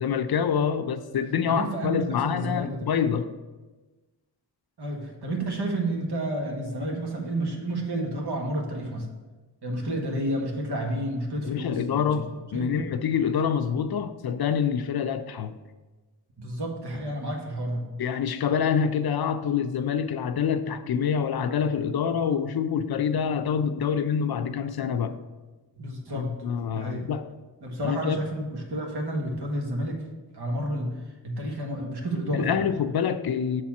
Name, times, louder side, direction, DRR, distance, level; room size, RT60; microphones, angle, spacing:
voice 1, 0.0-3.3 11.4-15.6 18.0-25.2 26.1-27.3 27.8-28.2 32.3-33.6, left 7 dB, 60° left, 0.5 m, -26 dB
voice 2, 1.5-3.0 4.8-9.1 9.6-12.8 16.4-17.9 25.8-27.1 27.6-30.0 30.3-31.0 31.2-32.6, right 1 dB, 70° right, 1.6 m, -31 dB
6.8 x 4.3 x 5.9 m
cardioid pair, 75°, 42 cm